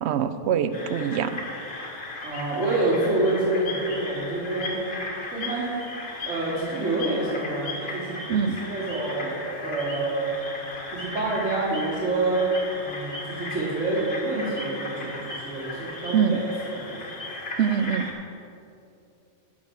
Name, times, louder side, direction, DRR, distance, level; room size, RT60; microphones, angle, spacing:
voice 1, 0.0-1.3 8.3-8.6 16.1-16.4 17.6-18.1, right 8 dB, 70° right, 12 dB, 0.8 m, -23 dB
sound 1, 0.7-18.1, left 2 dB, 55° left, 1.7 m, -36 dB
voice 2, 2.2-4.8 5.3-5.7 6.3-8.2 8.6-9.3 9.6-10.3 10.9-16.4 16.7-17.0, right 2 dB, 85° right, -9 dB, 3.0 m, -27 dB
12.0 x 5.2 x 7.0 m, 2.7 s
omnidirectional pair, 1.2 m